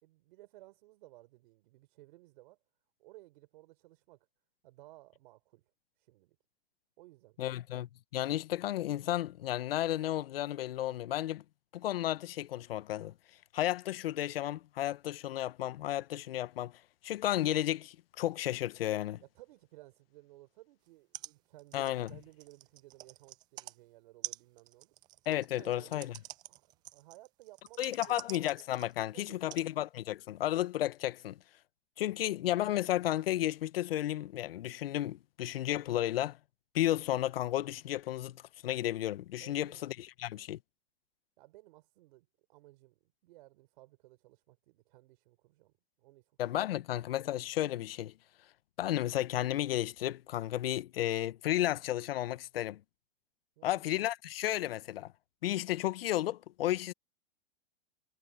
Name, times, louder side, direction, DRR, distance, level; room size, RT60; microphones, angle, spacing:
voice 1, 0.0-2.6 3.0-4.3 4.6-5.6 6.0-6.4 7.0-7.6 19.2-24.9 25.5-26.2 26.5-26.7 26.9-28.2 29.1-29.6 39.4-39.9 41.4-45.7 46.0-46.2 53.6-53.8, right 19 dB, 55° right, 3.9 m, -58 dB
voice 2, 7.4-11.4 11.7-13.1 13.5-16.7 17.0-19.2 21.7-22.1 25.3-26.1 27.8-31.4 32.0-36.4 36.7-40.6 46.4-48.1 48.8-52.8 53.6-55.1 55.4-56.9, left 13 dB, 70° left, 1.1 m, -33 dB
sound 1, 20.9-21.0 21.1-21.3 21.6-23.8 24.2-29.0 29.5-29.7 30.5-30.6, right 16 dB, 15° right, 0.3 m, -46 dB
hypercardioid pair, 140°, 30 cm